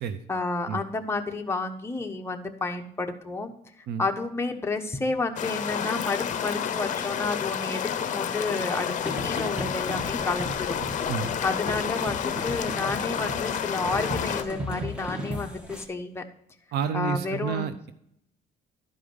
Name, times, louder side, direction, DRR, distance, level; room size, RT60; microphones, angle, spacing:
voice 1, 0.3-3.6 4.0-8.9 9.2-10.8 11.4-16.2 16.9-17.7, left 3 dB, 15° left, 4 dB, 1.1 m, -30 dB
sound 1, 5.4-14.4, left 8 dB, 50° left, 0.8 m, -30 dB
sound 2, 9.0-15.9, equal, 5° right, 1.6 m, -36 dB
voice 2, 16.7-17.9, right 7 dB, 75° right, 11 dB, 0.7 m, -30 dB
12.0 x 5.0 x 5.3 m, 0.75 s
cardioid pair, 110°, 17 cm